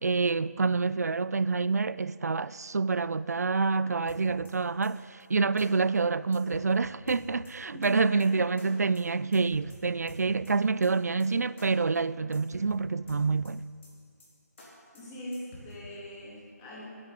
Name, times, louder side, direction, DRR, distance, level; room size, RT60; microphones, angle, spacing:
voice 1, 0.0-13.6, right 4 dB, 65° right, 0.4 m, -27 dB
sound 1, 4.1-4.5 4.8-4.9 5.2-5.3 5.6-5.7 5.9-6.0 6.3-6.7 7.1-7.5 7.8-7.9 8.2-8.3 8.6-8.7 8.9-9.0 9.3-9.8 10.1-10.5 10.8-10.9 11.2-11.3 11.6-11.7 11.9-12.0 12.3-12.7 13.1-13.5 13.8-13.9 14.2-14.3 14.6-14.7 14.9-15.0 15.3-15.7, left 1 dB, 45° left, 4.1 m, -48 dB
voice 2, 7.7-8.4 14.9-16.9, equal, 15° left, 3.1 m, -41 dB
12.0 x 10.5 x 7.2 m
figure-of-eight pair, 160°, 9 cm